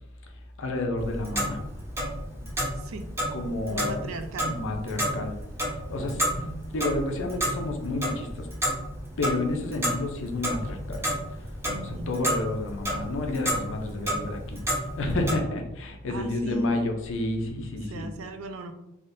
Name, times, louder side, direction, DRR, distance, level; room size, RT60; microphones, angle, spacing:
voice 1, 0.6-1.6 3.3-4.1 4.5-5.4 5.9-6.2 6.7-8.5 9.2-11.1 11.7-14.6 15.0-18.0, left 2 dB, 65° left, 4 dB, 0.5 m, -30 dB
Clock, 1.0-15.3, equal, 15° right, 0.6 m, -31 dB
voice 2, 2.8-3.1 3.7-4.6 6.2-6.7 11.6-12.2 16.1-16.7 17.8-18.7, right 2 dB, 70° right, 8 dB, 0.4 m, -38 dB
3.5 x 2.4 x 2.6 m, 0.87 s
head